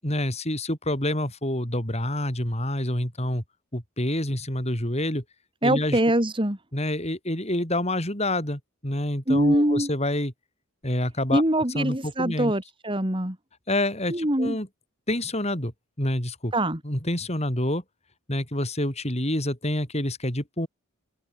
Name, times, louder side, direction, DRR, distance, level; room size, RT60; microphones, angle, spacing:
voice 1, 0.0-3.4 3.7-5.2 5.6-6.0 6.7-10.3 10.8-11.4 11.7-12.5 13.7-14.7 15.1-15.7 16.0-16.5 16.8-17.8 18.3-20.7, left 1 dB, 30° left, 6.5 m, -27 dB
voice 2, 5.6-6.6 9.3-9.9 11.3-13.4 14.1-14.6 16.5-16.8, right 1 dB, 25° right, 3.0 m, -23 dB
open air
head